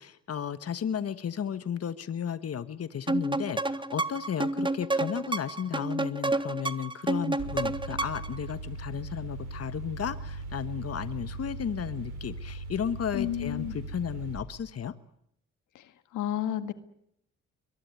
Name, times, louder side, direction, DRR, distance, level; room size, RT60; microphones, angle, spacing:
voice 1, 0.0-14.9, left 8 dB, 55° left, 13 dB, 1.4 m, -34 dB
sound 1, 3.1-8.4, right 2 dB, 15° right, 1.7 m, -30 dB
Mechanical fan, 7.4-14.4, right 3 dB, 90° right, 7.1 m, -39 dB
voice 2, 13.1-13.8 15.8-15.9 16.1-16.7, left 11 dB, 85° left, 12 dB, 1.9 m, -31 dB
22.5 x 22.0 x 9.6 m, 0.74 s
cardioid pair, 65°, 30 cm